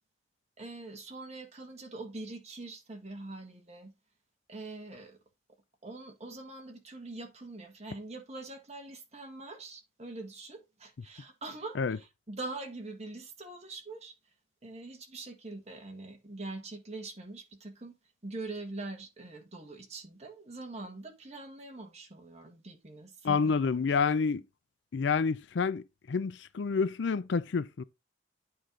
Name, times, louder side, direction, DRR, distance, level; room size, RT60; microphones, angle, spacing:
voice 1, 0.6-3.9 4.5-5.2 5.8-14.1 14.6-17.9 18.2-23.6 23.9-24.0, right 2 dB, 35° right, 1.6 m, -43 dB
voice 2, 23.2-24.4 24.9-27.8, left 5 dB, 65° left, 0.4 m, -28 dB
8.7 x 4.7 x 3.8 m
head